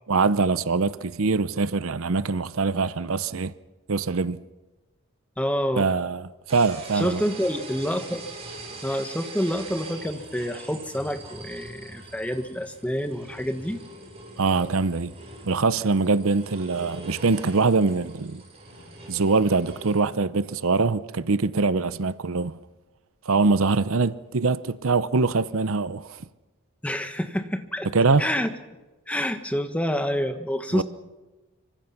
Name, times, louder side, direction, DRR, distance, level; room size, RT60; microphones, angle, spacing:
voice 1, 0.1-3.5 3.9-4.4 5.8-7.2 14.4-15.1 15.5-18.4 19.1-22.6 23.3-26.2 27.9-28.3 30.7-30.8, right 4 dB, 65° right, 0.7 m, -23 dB
voice 2, 5.4-5.9 6.9-8.2 8.8-13.8 26.8-27.9 28.2-28.5 29.1-30.8, equal, 5° left, 1.5 m, -27 dB
sound 1, 6.5-20.0, right 2 dB, 25° right, 7.7 m, -42 dB
26.0 x 24.5 x 5.9 m
head